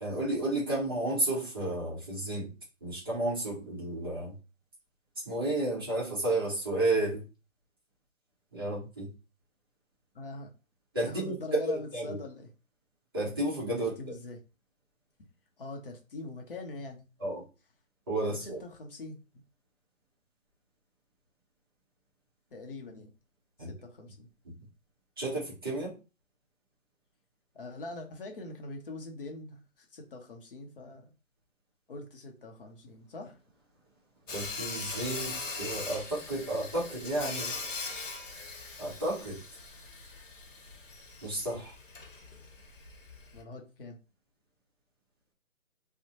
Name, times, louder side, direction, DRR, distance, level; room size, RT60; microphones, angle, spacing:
voice 1, 0.0-2.5 2.8-4.3 5.3-7.2 8.5-9.1 10.9-12.2 13.1-13.9 17.2-17.4 18.1-18.6 23.6-23.7 25.2-25.9 34.3-37.5 38.8-39.4 41.2-41.7, right 2 dB, 20° right, -6 dB, 0.6 m, -32 dB
voice 2, 10.1-10.5 11.1-12.5 13.8-14.4 15.6-17.1 18.3-19.2 22.5-23.1 23.6-24.3 27.5-31.1 31.9-33.4 43.3-44.0, left 2 dB, 45° left, 2 dB, 0.6 m, -43 dB
Sawing, 34.3-43.4, left 3 dB, 70° left, 0.9 m, -41 dB
2.6 x 2.0 x 2.8 m, 0.32 s
figure-of-eight pair, 150°, 40 cm